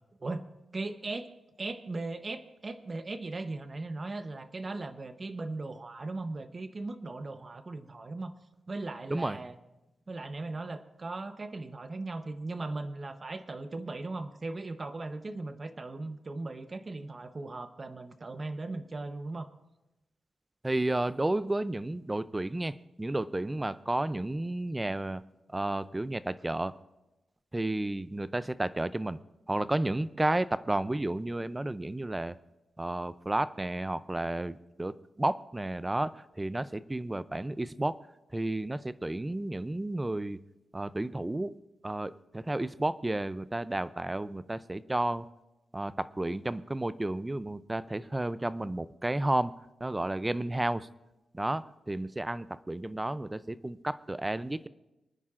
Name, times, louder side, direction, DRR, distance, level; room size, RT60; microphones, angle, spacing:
voice 1, 0.2-8.3 8.7-9.6 10.1-19.5, right 2 dB, 30° right, 9 dB, 0.9 m, -38 dB
voice 2, 20.6-25.2 25.5-26.7 27.5-29.2 29.5-32.4 32.8-38.0 38.3-40.4 40.7-41.6 41.8-45.3 45.7-49.5 49.8-50.9 51.3-54.7, right 1 dB, 15° right, 15 dB, 0.4 m, -32 dB
29.0 x 9.9 x 2.5 m, 0.97 s
wide cardioid pair, 115°, 0 cm